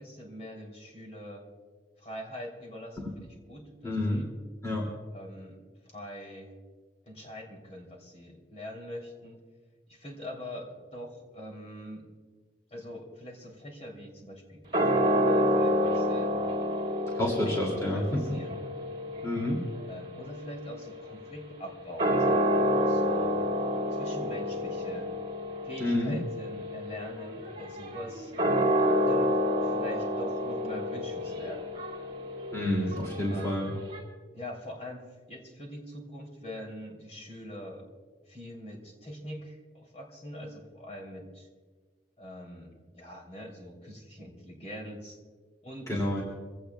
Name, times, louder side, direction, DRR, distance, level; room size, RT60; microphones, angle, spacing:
voice 1, 0.0-1.4 2.0-4.3 5.1-6.5 7.0-9.4 9.9-12.1 12.7-16.3 17.2-18.6 19.9-23.4 23.9-25.1 25.6-28.3 29.0-31.6 32.8-33.0 33.3-33.5 34.3-37.9 38.3-41.5 42.2-45.2 45.6-46.1, equal, 35° left, 0 dB, 3.3 m, -43 dB
voice 2, 3.8-4.2 4.6-4.9 17.1-18.4 19.2-19.6 25.8-26.2 32.5-33.8 45.9-46.2, left 1 dB, 15° left, -2 dB, 2.6 m, -29 dB
sound 1, 14.7-21.4 21.9-34.0, equal, 25° right, 3.6 m, -29 dB
25.0 x 17.0 x 2.3 m, 1.5 s
head